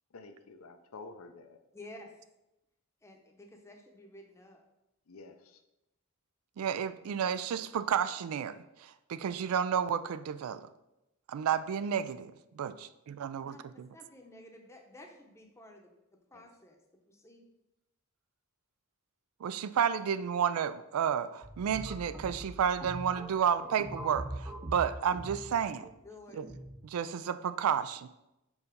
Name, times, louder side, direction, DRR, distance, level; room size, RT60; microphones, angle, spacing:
voice 1, 0.1-1.6 5.1-5.6 16.3-16.5, left 3 dB, 75° left, 8 dB, 0.6 m, -50 dB
voice 2, 1.7-2.1 3.0-4.6 13.4-15.9 16.3-16.8 17.1-17.4 25.5-25.6 26.0-26.4, left 1 dB, 15° left, 2 dB, 0.7 m, -52 dB
voice 3, 6.6-10.7 11.3-13.9 19.4-25.9 26.4-26.5 26.8-28.1, right 8 dB, 85° right, 13 dB, 0.3 m, -31 dB
sound 1, 21.4-26.8, right 1 dB, 10° right, 0.4 m, -43 dB
4.7 x 4.1 x 5.1 m, 0.92 s
head